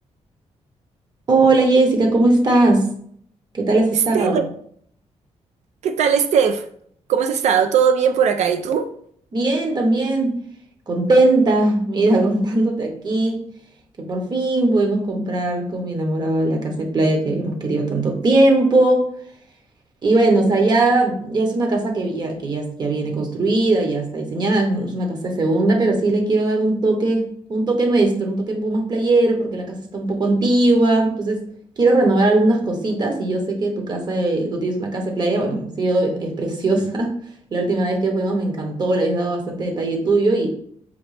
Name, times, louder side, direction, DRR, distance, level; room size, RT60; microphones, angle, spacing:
voice 1, 1.3-2.9 3.5-4.4 9.3-10.4 10.9-13.4 14.0-19.1 20.0-27.2 27.5-31.4 31.8-37.2 37.5-40.5, right 2 dB, 35° right, 2 dB, 1.0 m, -19 dB
voice 2, 5.8-6.6 7.1-8.9, right 7 dB, 75° right, 8 dB, 0.4 m, -18 dB
5.2 x 2.9 x 3.2 m, 0.63 s
wide cardioid pair, 170°, 12 cm